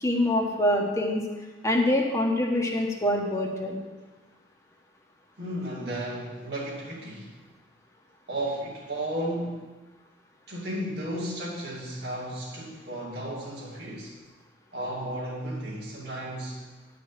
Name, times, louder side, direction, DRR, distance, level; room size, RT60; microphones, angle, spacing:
voice 1, 0.0-1.2 1.6-3.8, left 1 dB, 15° left, 0 dB, 1.3 m, -25 dB
voice 2, 5.4-7.3 8.3-9.7 10.5-14.1 14.7-16.6, right 1 dB, 55° right, -5 dB, 2.5 m, -34 dB
11.0 x 5.1 x 7.4 m, 1.2 s
head